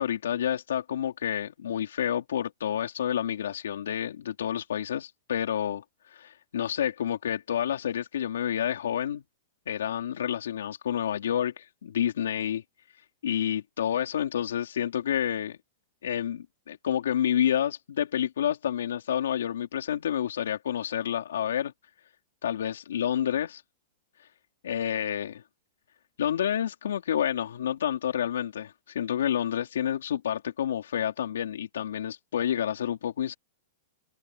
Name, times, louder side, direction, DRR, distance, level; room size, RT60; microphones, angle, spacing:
voice 1, 0.0-9.2 9.7-12.6 13.2-15.6 16.0-21.7 22.4-23.6 24.6-25.4 26.2-33.4, left 9 dB, 90° left, 3.9 m, -29 dB
open air
supercardioid pair, 160°, 0 cm